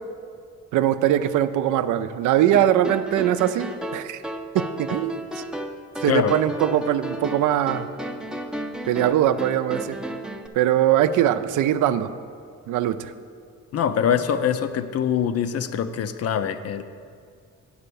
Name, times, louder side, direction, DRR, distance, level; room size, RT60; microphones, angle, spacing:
voice 1, 0.7-4.2 4.5-5.4 6.0-7.9 8.9-10.0 10.5-12.1 12.7-13.1, right 11 dB, 80° right, 11 dB, 0.5 m, -21 dB
sound 1, 2.5-10.5, right 1 dB, 5° right, 0.4 m, -33 dB
voice 2, 13.7-16.8, left 8 dB, 55° left, 11 dB, 0.6 m, -23 dB
9.0 x 4.8 x 6.9 m, 2.2 s
cardioid pair, 90°, 30 cm